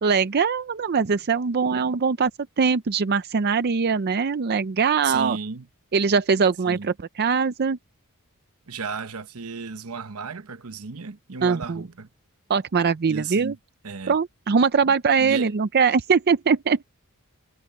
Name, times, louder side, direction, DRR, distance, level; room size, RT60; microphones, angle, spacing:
voice 1, 0.0-2.3 2.6-5.4 5.9-7.8 11.4-11.9 12.5-13.5 14.1-16.8, right 5 dB, 45° right, 0.5 m, -22 dB
voice 2, 5.0-5.7 6.6-6.9 8.7-12.1 13.1-13.6 13.8-14.1 14.9-15.5, right 5 dB, 70° right, 1.0 m, -34 dB
head